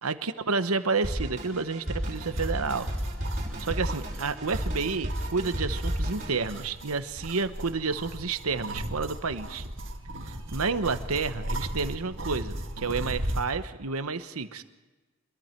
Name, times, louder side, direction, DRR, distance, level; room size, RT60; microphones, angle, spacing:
voice 1, 0.0-2.9 3.6-9.6 10.5-14.6, right 4 dB, 90° right, 10 dB, 1.1 m, -30 dB
Drum kit, 1.0-6.4, equal, 35° right, 5.8 m, -32 dB
sound 1, 2.1-13.5, right 1 dB, 60° right, 2.1 m, -37 dB
26.5 x 22.0 x 4.6 m, 1.2 s
head